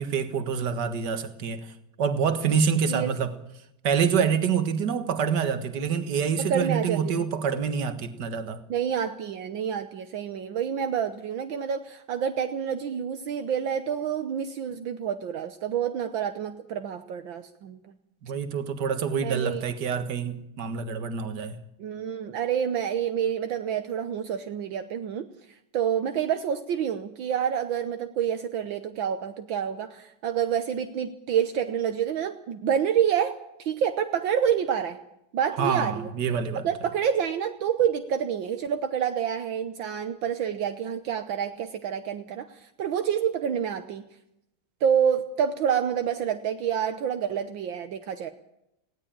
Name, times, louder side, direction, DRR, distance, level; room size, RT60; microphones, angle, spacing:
voice 1, 0.0-1.7 2.0-3.3 3.8-8.6 18.2-21.6 35.6-36.7, right 6 dB, 60° right, 2.1 m, -26 dB
voice 2, 6.4-7.3 8.7-17.8 19.2-19.6 21.8-25.3 25.7-35.0 35.3-36.1 36.6-44.1 44.8-48.3, right 8 dB, 75° right, 1.8 m, -28 dB
19.5 x 17.0 x 8.9 m
omnidirectional pair, 2.2 m